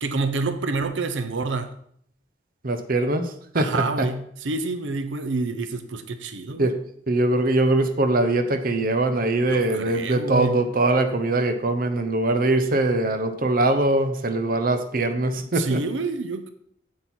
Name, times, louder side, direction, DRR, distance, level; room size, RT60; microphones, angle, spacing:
voice 1, 0.0-1.7 3.6-6.7 9.5-10.6 15.5-16.5, right 3 dB, 90° right, 8 dB, 0.7 m, -28 dB
voice 2, 2.6-4.1 6.6-6.7 7.1-15.8, right 2 dB, 50° right, 8 dB, 0.8 m, -22 dB
8.2 x 7.6 x 4.4 m, 0.66 s
head